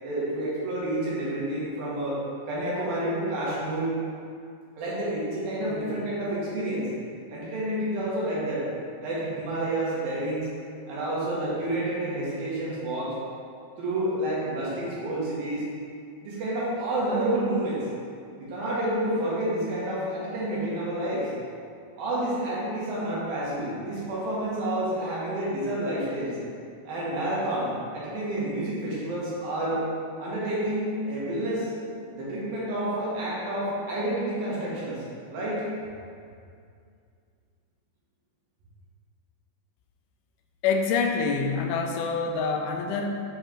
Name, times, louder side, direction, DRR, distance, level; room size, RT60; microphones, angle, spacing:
voice 1, 0.0-2.2 2.5-4.0 4.8-6.9 7.3-8.7 9.0-10.5 10.9-13.1 13.8-15.6 16.2-17.8 18.4-21.3 22.0-26.4 26.9-29.9 30.2-31.7 32.1-35.0 35.3-35.6, right 1 dB, 75° right, -7 dB, 3.4 m, -29 dB
voice 2, 40.6-43.2, left 4 dB, 90° left, 3 dB, 2.6 m, -26 dB
7.8 x 4.8 x 4.5 m, 2.3 s
omnidirectional pair, 4.3 m